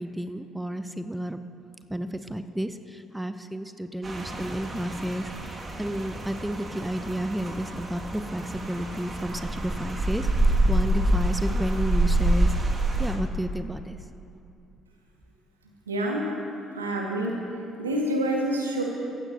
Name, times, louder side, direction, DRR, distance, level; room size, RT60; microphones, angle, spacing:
voice 1, 0.0-1.4 1.9-14.0, right 1 dB, 5° right, 10 dB, 0.8 m, -32 dB
Rain, 4.0-13.2, right 1 dB, 35° right, 2.3 m, -27 dB
voice 2, 15.9-16.3 16.7-17.3 17.8-18.8, right 1 dB, 85° right, -1 dB, 1.9 m, -27 dB
25.0 x 15.0 x 2.9 m, 2.7 s
figure-of-eight pair, 50°, 0 cm